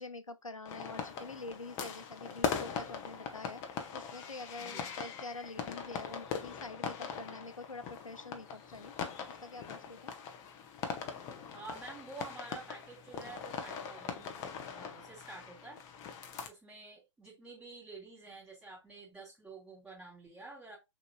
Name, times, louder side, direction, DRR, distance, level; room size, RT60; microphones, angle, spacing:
voice 1, 0.0-3.6 3.9-8.9 9.3-10.1, left 3 dB, 85° left, 0.8 m, -46 dB
sound 1, 0.7-16.5, left 6 dB, 20° left, 0.6 m, -41 dB
voice 2, 4.6-4.9 11.5-14.5 14.7-15.8 16.4-20.8, right 3 dB, 5° right, 2.8 m, -49 dB
6.4 x 3.0 x 2.2 m
figure-of-eight pair, 125°, 17 cm